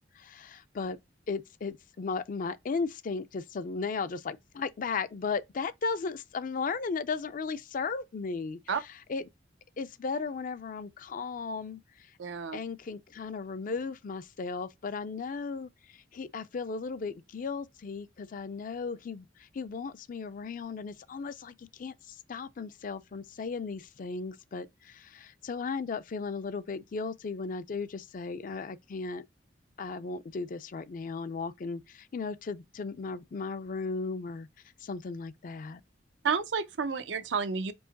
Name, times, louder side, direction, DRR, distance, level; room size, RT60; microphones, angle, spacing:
voice 1, 0.2-1.0 1.3-9.3 9.8-11.8 12.5-29.2 29.8-34.5 34.8-35.8, left 4 dB, 45° left, 0.4 m, -36 dB
voice 2, 12.2-12.6 36.2-37.7, right 5 dB, 90° right, 0.6 m, -30 dB
4.7 x 2.9 x 3.9 m
head